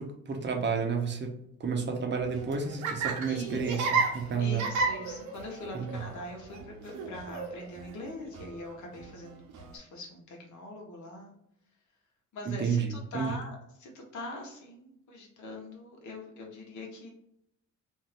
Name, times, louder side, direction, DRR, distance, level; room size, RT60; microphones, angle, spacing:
voice 1, 0.0-4.6 5.7-6.0 12.5-13.4, right 5 dB, 35° right, 3 dB, 0.8 m, -31 dB
Laughter, 2.2-9.8, right 4 dB, 80° right, 0.7 m, -34 dB
voice 2, 3.2-3.8 4.4-11.4 12.3-17.1, left 1 dB, 75° left, 0 dB, 1.1 m, -42 dB
2.6 x 2.6 x 3.2 m, 0.77 s
cardioid pair, 90°, 30 cm